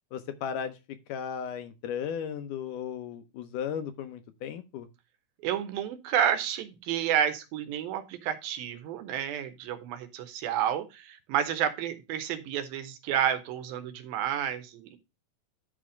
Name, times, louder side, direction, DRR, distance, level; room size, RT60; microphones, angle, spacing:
voice 1, 0.1-0.8 1.1-4.9, left 8 dB, 75° left, 9 dB, 2.1 m, -35 dB
voice 2, 5.4-15.0, right 9 dB, 85° right, 10 dB, 2.8 m, -30 dB
11.5 x 4.3 x 5.0 m, 0.26 s
omnidirectional pair, 4.1 m